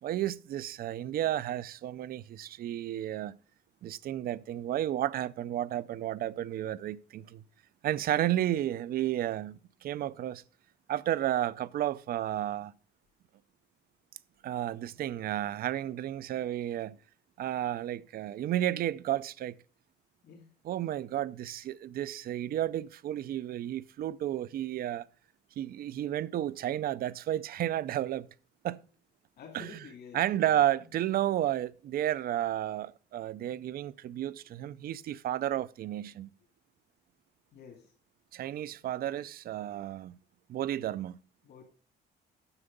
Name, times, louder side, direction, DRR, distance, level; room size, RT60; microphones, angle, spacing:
voice 1, 0.0-3.4 3.8-7.4 7.8-10.4 10.9-12.7 14.4-17.0 17.4-19.6 20.6-25.1 25.6-28.3 28.6-28.8 29.5-29.8 30.1-36.3 38.3-40.1 40.5-41.2, right 12 dB, 55° right, 0.5 m, -32 dB
voice 2, 29.4-30.6 37.5-37.9 41.4-41.6, left 6 dB, 60° left, 2.4 m, -50 dB
9.8 x 6.9 x 5.2 m
cardioid pair, 155°, 18 cm